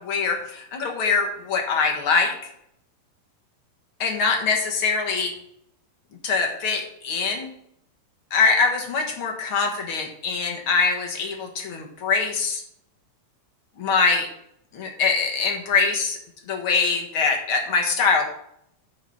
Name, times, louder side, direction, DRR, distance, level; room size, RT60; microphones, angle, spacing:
voice 1, 0.0-2.5 4.0-5.3 6.2-7.5 8.3-12.6 13.8-14.3 14.7-16.2 16.5-18.3, left 4 dB, 50° left, 2 dB, 2.0 m, -23 dB
9.7 x 5.7 x 5.8 m, 0.72 s
omnidirectional pair, 3.6 m